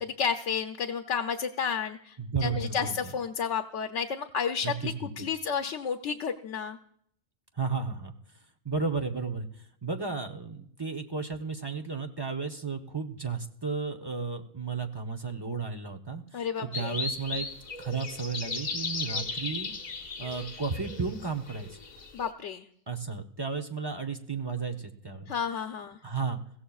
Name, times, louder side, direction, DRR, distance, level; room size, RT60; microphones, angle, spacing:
voice 1, 0.0-2.2 2.4-6.8 16.3-17.0 22.1-22.7 25.3-26.0, left 6 dB, 90° left, 5 dB, 1.0 m, -31 dB
voice 2, 2.2-3.0 4.6-5.3 7.6-8.1 8.6-9.5 9.8-17.5 17.8-19.7 20.2-21.8 22.9-25.3 26.0-26.4, right 4 dB, 25° right, 3 dB, 0.7 m, -33 dB
sound 1, 16.7-22.3, left 4 dB, 40° left, 1.1 m, -36 dB
21.5 x 15.5 x 2.4 m, 0.68 s
omnidirectional pair, 1.2 m